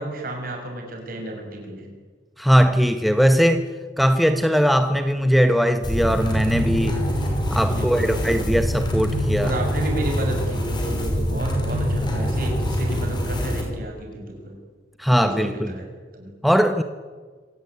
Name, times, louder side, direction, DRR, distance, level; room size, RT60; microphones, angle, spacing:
voice 1, 0.0-1.9 7.7-8.4 9.4-14.6 15.1-15.9 16.1-16.3, right 1 dB, 50° right, 2 dB, 6.7 m, -32 dB
voice 2, 2.4-3.7 4.0-7.0 7.5-9.5 15.0-15.8 16.4-16.8, equal, ahead, 8 dB, 1.0 m, -19 dB
sound 1, 5.8-13.6, equal, 25° left, 5.6 m, -24 dB
26.0 x 18.0 x 9.6 m, 1.5 s
head